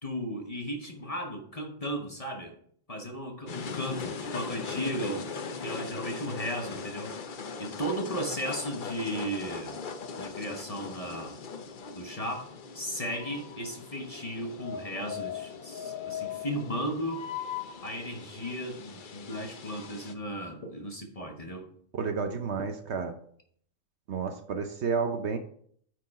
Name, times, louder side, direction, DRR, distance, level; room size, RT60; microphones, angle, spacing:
voice 1, 0.0-2.6 2.9-5.3 5.6-7.2 7.6-9.8 10.2-11.4 11.9-12.5 12.7-17.2 17.8-21.7, equal, 30° left, 3 dB, 1.1 m, -35 dB
sound 1, 3.5-20.1, left 5 dB, 45° left, 0.7 m, -39 dB
voice 2, 21.9-23.1 24.1-25.4, right 5 dB, 60° right, 7 dB, 0.9 m, -31 dB
9.4 x 4.7 x 4.8 m, 0.62 s
omnidirectional pair, 1.4 m